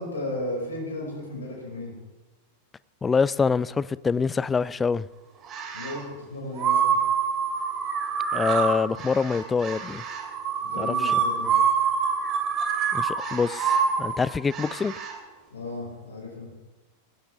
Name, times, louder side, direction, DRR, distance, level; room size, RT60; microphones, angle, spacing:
voice 1, 0.0-1.9 5.7-6.0 6.3-6.9 10.6-11.5 15.5-16.5, left 1 dB, 70° left, 5.4 m, -34 dB
voice 2, 3.0-5.1 8.3-10.0 10.8-11.2 12.9-14.9, left 5 dB, 15° left, 0.4 m, -25 dB
sound 1, 5.4-6.0 6.5-15.1, right 6 dB, 30° right, 3.0 m, -26 dB
21.0 x 16.0 x 3.5 m
figure-of-eight pair, 90°, 0 cm